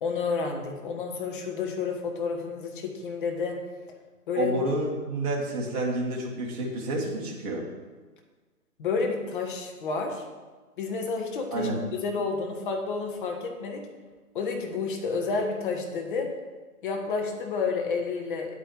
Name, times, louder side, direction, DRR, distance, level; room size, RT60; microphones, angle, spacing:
voice 1, 0.0-3.6 4.3-4.5 8.8-10.2 10.8-11.7 12.0-13.8 14.3-16.3 16.8-18.6, left 4 dB, 35° left, 3 dB, 1.6 m, -30 dB
voice 2, 4.4-7.7 11.5-11.8, right 1 dB, 25° right, -2 dB, 1.8 m, -29 dB
9.2 x 8.6 x 4.7 m, 1.3 s
figure-of-eight pair, 145°, 46 cm